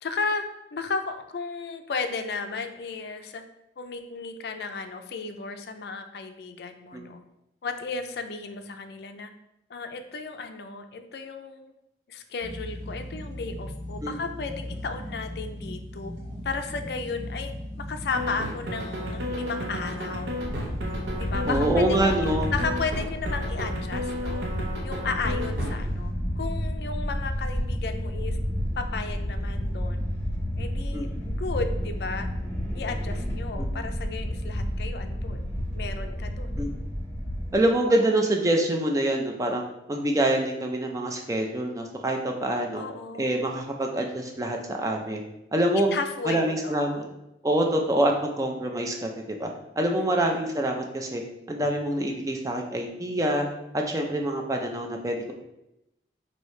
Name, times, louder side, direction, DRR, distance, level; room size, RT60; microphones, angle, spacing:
voice 1, 0.0-3.4 3.8-7.2 7.6-9.3 9.7-11.7 12.1-16.1 16.4-17.5 17.8-20.4 21.2-22.2 22.5-24.5 24.8-28.4 28.8-30.0 30.6-32.3 32.7-35.5 35.7-36.6 42.7-43.4 45.7-47.1 50.1-50.5, left 4 dB, 60° left, 7 dB, 0.4 m, -34 dB
sound 1, 12.4-23.9, left 1 dB, 50° right, 1.5 m, -38 dB
sound 2, 18.1-25.7, equal, 70° right, 0.7 m, -33 dB
sound 3, 20.4-37.5, equal, 10° left, 1.2 m, -31 dB
voice 2, 21.5-22.5 30.9-31.1 33.6-33.7 36.6-36.7 37.5-39.6 39.9-42.8 43.2-45.2 45.5-45.9 46.3-47.0 47.4-49.5 49.8-51.2 51.5-53.5 53.7-55.3, right 1 dB, 20° right, 2 dB, 0.4 m, -25 dB
4.8 x 2.7 x 3.1 m, 0.87 s
head